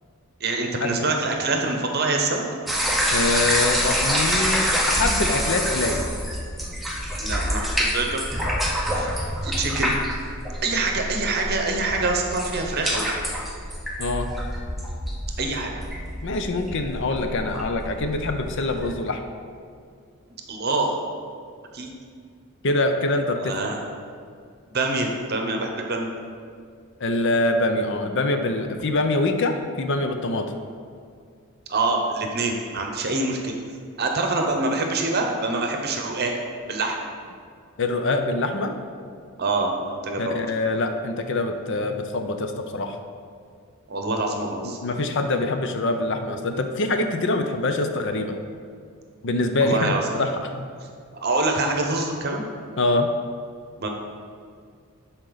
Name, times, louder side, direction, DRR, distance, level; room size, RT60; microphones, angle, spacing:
voice 1, 0.4-2.4 7.2-8.2 8.9-9.1 9.4-10.0 10.6-13.2 15.4-15.7 20.5-21.0 21.7-21.9 23.4-23.8 24.7-26.1 31.7-33.6 34.0-36.4 36.7-37.0 39.4-40.3 43.9-44.8 49.6-50.1 51.1-52.4 53.8-53.9, right 3 dB, 45° right, 2 dB, 0.9 m, -25 dB
sound 1, 2.7-18.9, equal, ahead, 0.8 m, -27 dB
voice 2, 3.1-6.0 14.0-14.3 16.2-19.2 22.6-23.5 27.0-30.5 37.8-38.7 40.2-43.0 44.8-48.4 49.2-50.7 52.8-53.1, left 2 dB, 55° left, 6 dB, 0.6 m, -24 dB
11.5 x 4.4 x 4.0 m, 2.2 s
head